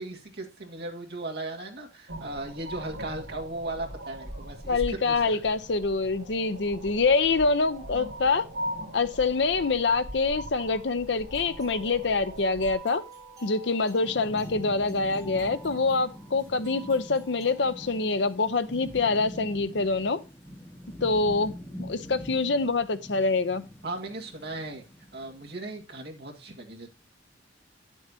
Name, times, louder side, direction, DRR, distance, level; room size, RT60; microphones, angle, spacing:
voice 1, 0.0-5.4 23.8-24.8 25.1-26.9, right 2 dB, 60° right, 1.8 m, -37 dB
sound 1, 2.1-12.8, equal, 80° right, 2.3 m, -40 dB
voice 2, 4.7-8.5 8.9-13.0 13.4-20.2 21.0-21.5 21.8-23.6, left 3 dB, 70° left, 0.7 m, -25 dB
sound 2, 11.2-19.1, right 1 dB, 20° right, 3.8 m, -50 dB
Thunderstorm / Rain, 13.6-25.8, equal, 10° left, 1.8 m, -44 dB
9.4 x 7.2 x 2.8 m
head